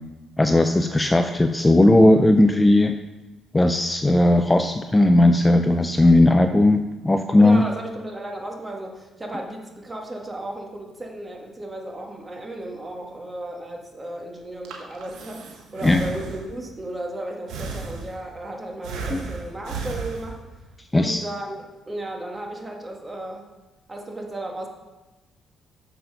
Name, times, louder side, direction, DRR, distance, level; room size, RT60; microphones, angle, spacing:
voice 1, 0.4-3.0 3.5-7.6 15.8-16.0 19.1-19.3 20.9-21.2, left 1 dB, 15° left, 7 dB, 0.4 m, -17 dB
voice 2, 7.4-20.4 20.9-23.5 23.9-24.7, right 1 dB, 20° right, 1 dB, 1.6 m, -34 dB
Breathing, 14.4-16.7 17.5-18.4 18.8-20.7, right 4 dB, 85° right, 1.3 m, -34 dB
7.1 x 5.6 x 5.6 m, 1.1 s
cardioid pair, 90°, 0 cm